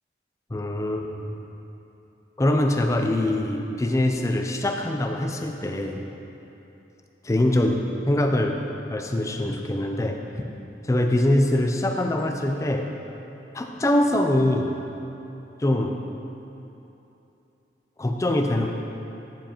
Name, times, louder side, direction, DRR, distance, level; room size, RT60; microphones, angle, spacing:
voice 1, 0.5-1.3 2.4-6.0 7.3-7.8 8.1-10.2 10.8-12.9 13.5-14.8 15.6-16.0 18.0-18.7, left 1 dB, 15° left, 3 dB, 0.4 m, -23 dB
8.9 x 7.3 x 2.9 m, 2.9 s
head